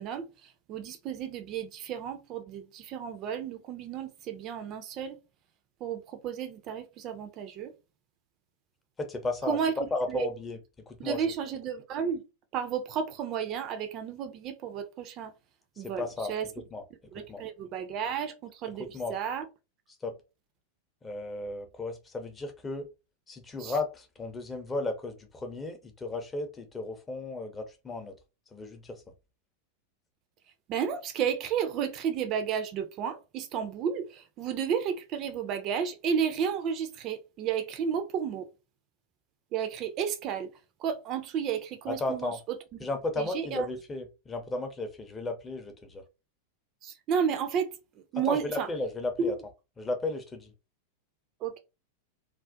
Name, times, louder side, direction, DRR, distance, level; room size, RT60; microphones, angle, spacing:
voice 1, 0.0-5.2 5.8-7.7 9.5-9.8 10.1-10.3 11.0-12.2 12.5-15.3 15.8-16.5 17.1-19.5 23.6-23.7 30.7-38.5 39.5-40.5 40.8-42.3 43.2-43.7 46.8-48.7 49.2-49.3 51.4-51.6, right 7 dB, 35° right, 0.4 m, -32 dB
voice 2, 9.0-9.6 9.9-10.6 10.9-11.2 15.8-16.8 17.3-17.4 18.8-19.1 20.0-20.2 21.0-22.9 23.3-28.1 28.5-29.0 41.9-42.4 42.8-46.0 48.3-49.3 49.8-50.5, left 2 dB, 15° left, 0.5 m, -34 dB
2.4 x 2.0 x 2.5 m
figure-of-eight pair, 90°, 0 cm